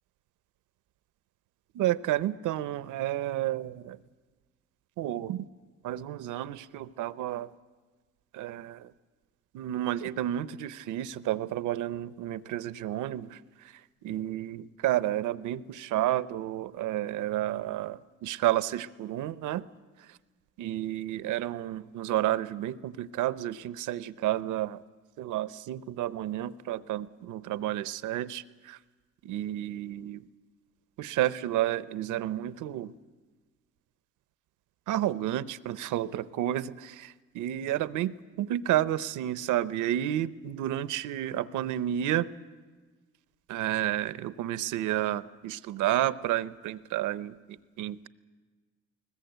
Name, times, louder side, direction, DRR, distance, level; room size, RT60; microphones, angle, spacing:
voice 1, 1.7-4.0 5.0-5.5 5.8-7.5 8.3-8.9 9.5-19.7 20.0-20.2 20.6-24.8 25.2-28.8 29.2-30.2 31.0-32.9 34.9-42.3 43.5-48.1, right 13 dB, 85° right, 15 dB, 0.7 m, -31 dB
21.5 x 20.0 x 8.0 m, 1.4 s
cardioid pair, 90°, 30 cm